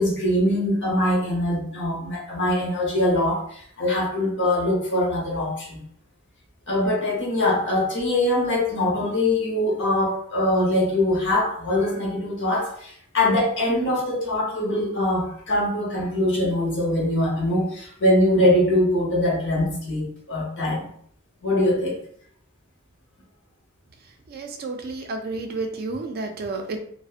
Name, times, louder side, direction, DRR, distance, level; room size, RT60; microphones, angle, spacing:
voice 1, 0.0-5.8 6.7-20.9 21.4-22.0, left 1 dB, 60° left, -2 dB, 0.8 m, -23 dB
voice 2, 24.3-26.8, right 3 dB, 45° right, 5 dB, 0.4 m, -31 dB
2.5 x 2.0 x 2.3 m, 0.63 s
head